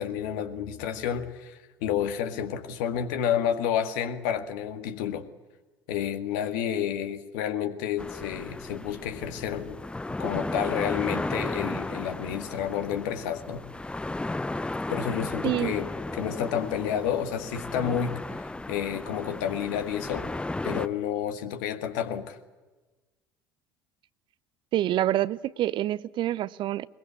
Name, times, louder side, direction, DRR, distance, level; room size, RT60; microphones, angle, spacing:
voice 1, 0.0-5.3 5.9-9.8 10.2-13.6 14.9-20.3 20.6-22.4, left 9 dB, 65° left, 8 dB, 1.9 m, -30 dB
sound 1, 8.0-20.9, left 2 dB, 10° left, 0.7 m, -34 dB
voice 2, 15.4-15.7 24.7-26.9, right 13 dB, 45° right, 19 dB, 0.7 m, -27 dB
22.0 x 21.5 x 8.3 m, 1.2 s
figure-of-eight pair, 60°, 11 cm